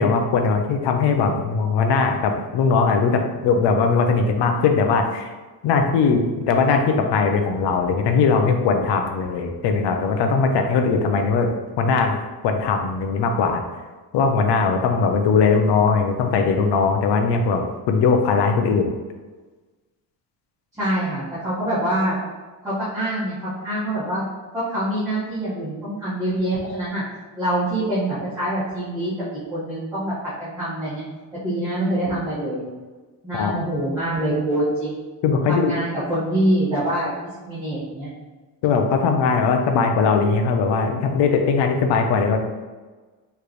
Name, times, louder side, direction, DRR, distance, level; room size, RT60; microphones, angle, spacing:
voice 1, 0.0-5.3 5.6-11.5 11.8-12.2 12.4-13.6 14.1-18.9 33.3-33.6 35.2-35.8 38.6-42.4, left 5 dB, 80° left, 5 dB, 0.7 m, -20 dB
voice 2, 20.8-22.1 22.6-24.2 24.5-27.0 27.4-30.1 30.4-31.0 31.4-32.6 33.2-35.0 35.5-37.1 37.4-38.1, right 1 dB, 10° right, -15 dB, 1.5 m, -25 dB
4.8 x 3.3 x 3.1 m, 1.3 s
cardioid pair, 170°, 41 cm